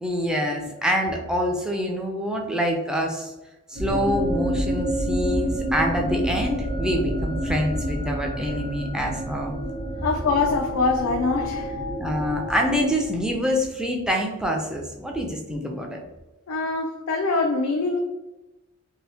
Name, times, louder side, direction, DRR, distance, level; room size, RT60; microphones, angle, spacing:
voice 1, 0.0-3.3 3.7-9.5 12.0-16.0, equal, 5° right, 0 dB, 0.4 m, -26 dB
sound 1, 3.7-13.6, equal, 85° right, 0.9 m, -29 dB
voice 2, 10.0-11.8 16.5-18.0, left 3 dB, 85° left, 1 dB, 0.4 m, -24 dB
2.8 x 2.6 x 3.4 m, 1.0 s
head